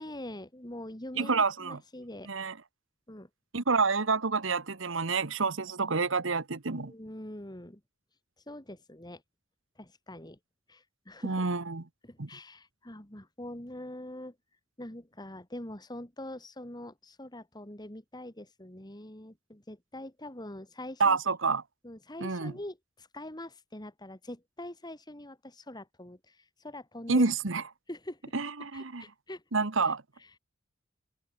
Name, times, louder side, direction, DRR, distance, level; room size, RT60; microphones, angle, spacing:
voice 1, 0.0-2.3 3.1-3.3 6.8-7.8 8.5-9.2 9.8-10.4 10.7-11.5 12.0-14.3 14.8-21.2 21.8-27.3 27.9-28.2 28.7-29.4 29.8-29.9, left 1 dB, 20° left, 2.9 m, -44 dB
voice 2, 1.2-1.8 2.3-2.5 3.5-6.9 11.2-11.8 12.2-12.3 21.0-21.6 22.2-22.5 27.1-27.6 28.3-29.0 29.5-30.0, right 4 dB, 75° right, 1.3 m, -28 dB
head